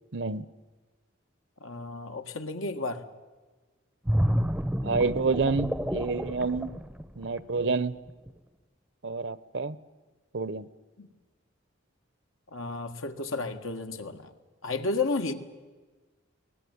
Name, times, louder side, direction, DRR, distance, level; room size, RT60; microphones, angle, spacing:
voice 1, 0.1-0.4 4.8-6.7 7.2-7.9 9.0-9.8 10.3-10.7, right 4 dB, 60° right, 17 dB, 0.8 m, -28 dB
voice 2, 1.6-3.0 11.0-11.1 12.5-14.3 14.6-15.3, left 3 dB, 85° left, 6 dB, 1.7 m, -32 dB
sound 1, 4.1-7.6 8.1-8.3, equal, 5° right, 0.7 m, -29 dB
22.5 x 19.0 x 9.5 m, 1.3 s
head